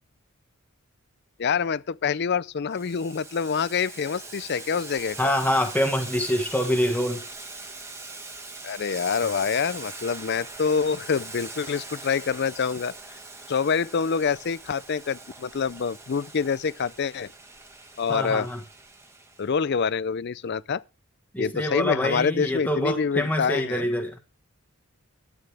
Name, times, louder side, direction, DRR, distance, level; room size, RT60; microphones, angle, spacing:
voice 1, 1.4-5.3 8.6-13.2 13.5-17.3 18.0-18.5 19.4-20.8 21.4-23.9, left 6 dB, 50° left, 0.4 m, -26 dB
Boiling, 2.7-19.5, right 3 dB, 10° right, 1.2 m, -42 dB
voice 2, 5.2-7.2 18.1-18.6 21.3-24.2, left 1 dB, 5° left, 1.4 m, -25 dB
12.5 x 8.9 x 3.3 m
head